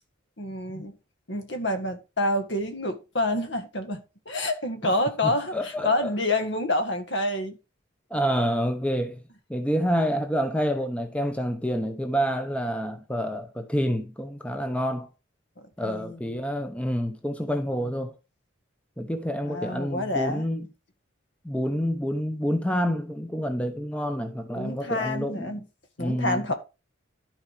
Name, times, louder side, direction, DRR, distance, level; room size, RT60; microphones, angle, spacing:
voice 1, 0.4-0.9 1.3-7.6 15.6-16.4 17.8-17.9 19.4-20.5 24.6-25.6 26.0-26.5, left 1 dB, 60° left, 1.8 m, -28 dB
voice 2, 5.2-6.1 8.1-9.2 9.5-15.1 15.8-18.1 19.0-20.7 21.4-25.6 26.0-26.5, equal, 5° left, 0.8 m, -28 dB
12.0 x 4.9 x 5.0 m
head